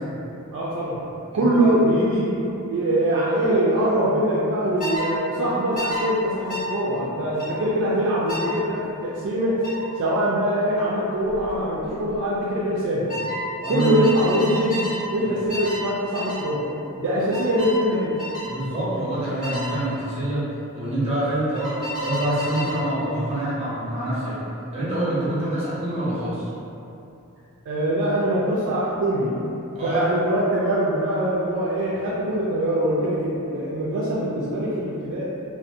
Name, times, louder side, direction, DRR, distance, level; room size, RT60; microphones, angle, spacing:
voice 1, 0.5-1.0 1.3-2.4 2.7-9.6 10.0-13.1 13.7-14.9 15.1-16.7 17.0-18.1 27.7-29.4 29.8-35.2, right 1 dB, 60° right, -7 dB, 0.3 m, -23 dB
voice 2, 1.3-1.8 13.6-14.1 15.2-15.3 17.3-17.4 18.4-24.4 24.7-26.5 29.7-30.0, right 1 dB, 30° right, -9 dB, 0.7 m, -26 dB
sound 1, 4.8-5.1 5.8-6.0 6.5-6.7 7.4-7.6 8.3-8.5 9.6-9.8 11.3-11.5 11.8-12.2 13.1-15.0 15.5-15.9 16.1-16.4 17.3-17.8 18.2-18.5 19.4-19.7 21.5-22.8, left 1 dB, 40° left, 0.8 m, -31 dB
2.6 x 2.0 x 2.4 m, 2.8 s
head